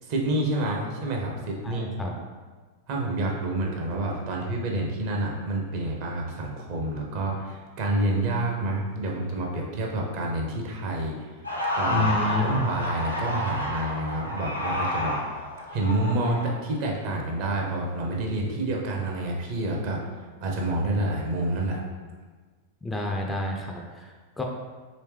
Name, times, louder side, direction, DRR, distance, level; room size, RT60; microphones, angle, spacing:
voice 1, 0.0-1.9 2.9-11.3 11.8-12.1 12.4-15.4 15.7-21.8, right 2 dB, 45° right, -1 dB, 0.7 m, -28 dB
voice 2, 1.6-2.1 11.9-12.7 22.8-24.4, left 1 dB, 10° left, 0 dB, 0.4 m, -29 dB
sound 1, 11.4-16.5, left 1 dB, 85° left, 0.7 m, -30 dB
3.2 x 3.1 x 3.2 m, 1.4 s
figure-of-eight pair, 90°, 0 cm